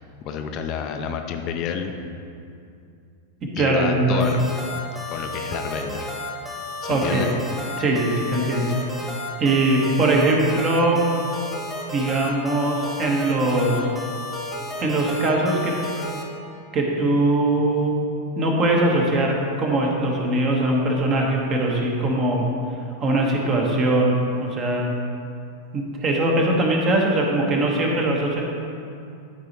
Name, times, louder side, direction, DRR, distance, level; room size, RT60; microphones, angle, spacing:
voice 1, 0.2-1.9 3.5-4.4 5.1-6.1 6.8-7.3 8.6-8.7, left 7 dB, 40° left, 5 dB, 0.5 m, -29 dB
voice 2, 3.4-4.3 6.9-7.3 7.8-8.7 9.4-11.0 11.9-13.9 14.8-15.8 16.7-18.0 18.4-22.5 23.0-24.1 24.4-24.9 25.7-28.4, right 2 dB, 30° right, 0 dB, 1.2 m, -21 dB
sound 1, 4.2-16.2, left 2 dB, ahead, 1.4 m, -33 dB
12.0 x 4.9 x 3.0 m, 2.5 s
figure-of-eight pair, 90°, 0 cm